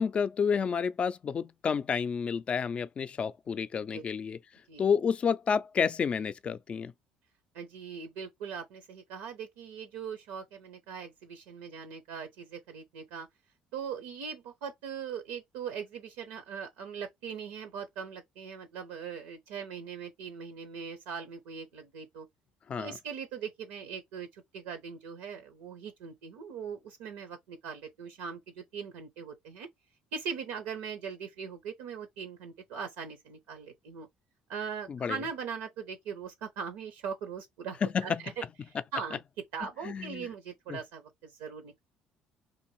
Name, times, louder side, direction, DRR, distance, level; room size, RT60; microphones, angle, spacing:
voice 1, 0.0-4.4 4.8-6.9 22.7-23.0 34.9-35.2 37.8-38.2 39.8-40.3 40.7-40.8, left 6 dB, 40° left, 0.3 m, -30 dB
voice 2, 7.5-13.3 13.7-22.3 22.8-29.7 30.1-34.1 34.5-39.2 39.5-41.8, right 6 dB, 85° right, 0.5 m, -40 dB
2.5 x 2.5 x 3.0 m
supercardioid pair, 65°, 3 cm